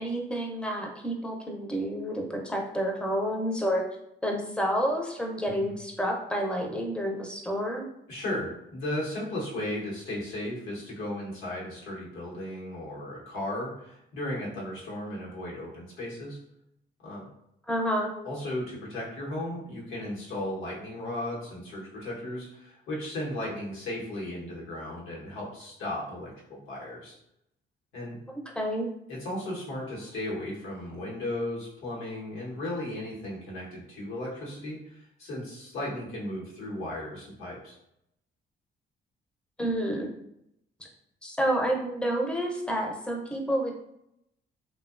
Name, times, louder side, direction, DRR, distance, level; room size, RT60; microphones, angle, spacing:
voice 1, 0.0-3.8 4.2-7.9 17.7-18.1 28.3-28.9 39.6-40.1 41.2-43.7, equal, 5° left, 1 dB, 0.5 m, -29 dB
voice 2, 8.1-16.4 17.0-17.2 18.2-27.1 27.9-28.2 29.1-37.8, left 1 dB, 85° left, -4 dB, 1.0 m, -35 dB
2.6 x 2.2 x 2.4 m, 0.79 s
cardioid pair, 90°, 20 cm